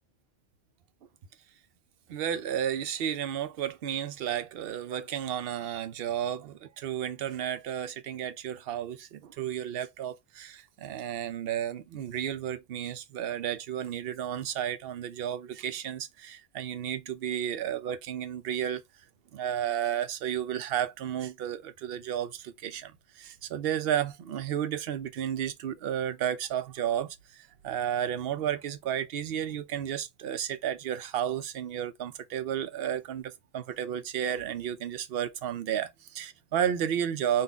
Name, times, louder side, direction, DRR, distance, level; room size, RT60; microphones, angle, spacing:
voice 1, 2.1-18.8 19.3-22.9 23.2-27.2 27.6-37.4, right 10 dB, 60° right, 0.8 m, -32 dB
4.0 x 2.5 x 3.4 m
omnidirectional pair, 1.3 m